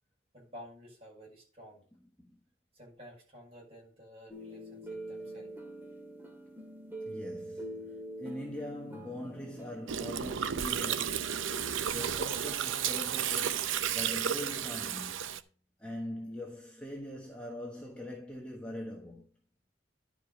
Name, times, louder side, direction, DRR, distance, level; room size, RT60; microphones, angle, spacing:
voice 1, 0.3-1.9 2.7-5.5, equal, 30° right, 6.0 m, -52 dB
sound 1, 4.3-11.7, right 1 dB, 10° right, 2.1 m, -44 dB
voice 2, 7.1-11.5 11.9-15.3 15.8-19.3, left 1 dB, 5° left, 1.2 m, -42 dB
Gurgling, 9.9-15.4, right 9 dB, 85° right, 0.6 m, -33 dB
11.0 x 5.0 x 5.4 m
head